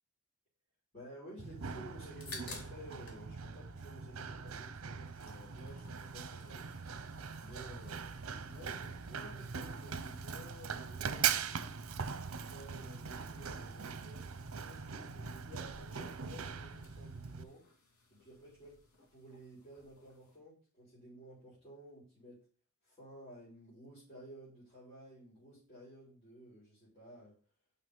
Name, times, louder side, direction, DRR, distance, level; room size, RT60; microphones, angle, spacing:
voice 1, 0.9-6.7 7.4-8.0 8.4-11.5 12.4-14.3 14.7-17.6 18.1-18.8 19.1-22.4 22.8-27.4, equal, 25° left, -9 dB, 4.1 m, -54 dB
Run, 1.4-17.4, right 6 dB, 70° right, 0.7 m, -41 dB
sound 1, 2.0-3.2 3.5-4.6 4.9-20.4, left 3 dB, 75° left, 2.6 m, -57 dB
6.0 x 5.9 x 5.4 m, 0.39 s
head